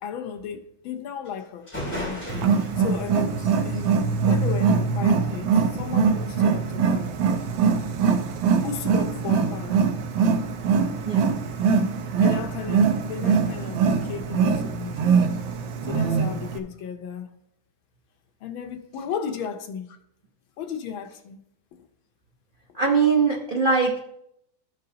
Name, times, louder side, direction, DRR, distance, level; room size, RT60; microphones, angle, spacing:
voice 1, 0.0-3.4 3.6-7.2 8.6-9.8 12.2-15.3 15.9-17.3 18.4-20.0 20.6-21.4 21.8-21.9, left 7 dB, 75° left, 1.6 m, -35 dB
sound 1, 1.2-1.3 1.7-5.1, equal, 5° left, 2.3 m, -37 dB
Wild animals, 2.3-16.6, right 5 dB, 70° right, 1.5 m, -23 dB
voice 2, 22.7-24.0, right 5 dB, 55° right, 0.5 m, -21 dB
13.5 x 5.2 x 2.8 m
omnidirectional pair, 2.3 m